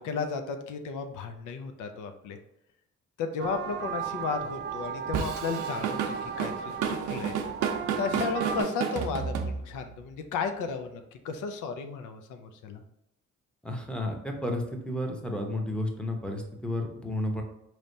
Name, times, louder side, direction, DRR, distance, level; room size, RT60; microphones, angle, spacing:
voice 1, 0.0-2.4 3.2-7.4 8.0-12.8, left 5 dB, 80° left, 7 dB, 0.5 m, -34 dB
sound 1, 3.4-8.6, right 7 dB, 35° right, 0.4 m, -35 dB
Drum kit / Drum, 5.1-10.0, right 7 dB, 80° right, 0.6 m, -31 dB
voice 2, 13.6-17.4, left 1 dB, 5° left, 2 dB, 0.8 m, -32 dB
4.2 x 3.2 x 2.7 m, 0.87 s
cardioid pair, 90°, 30 cm